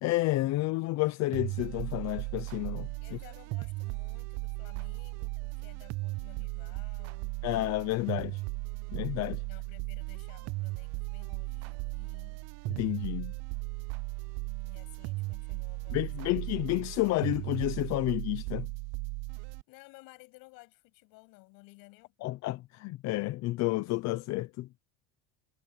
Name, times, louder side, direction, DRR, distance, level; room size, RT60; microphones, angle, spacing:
voice 1, 0.0-2.9 7.4-8.4 8.9-9.4 12.7-13.3 15.9-18.7 22.2-24.7, left 18 dB, 45° left, 0.8 m, -30 dB
sound 1, 1.3-19.6, right 24 dB, 45° right, 0.4 m, -37 dB
voice 2, 3.0-7.4 9.5-12.4 14.6-16.3 19.7-22.3, left 26 dB, 65° left, 7.6 m, -56 dB
cardioid pair, 160°, 37 cm